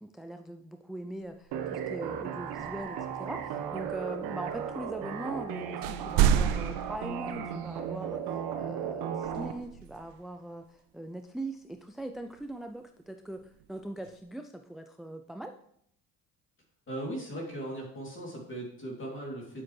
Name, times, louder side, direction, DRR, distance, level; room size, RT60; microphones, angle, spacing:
voice 1, 0.0-13.4 13.7-15.5, right 1 dB, ahead, 6 dB, 0.4 m, -41 dB
sound 1, 1.3-1.4 2.5-5.5 5.8-8.0 9.2-10.3 12.1-12.7 13.4-14.2, right 9 dB, 85° right, 0.6 m, -32 dB
sound 2, 1.5-9.5, right 8 dB, 65° right, 1.2 m, -36 dB
voice 2, 16.9-19.6, right 1 dB, 30° left, -2 dB, 2.8 m, -38 dB
8.4 x 7.3 x 3.2 m, 0.68 s
supercardioid pair, 90°, 40 cm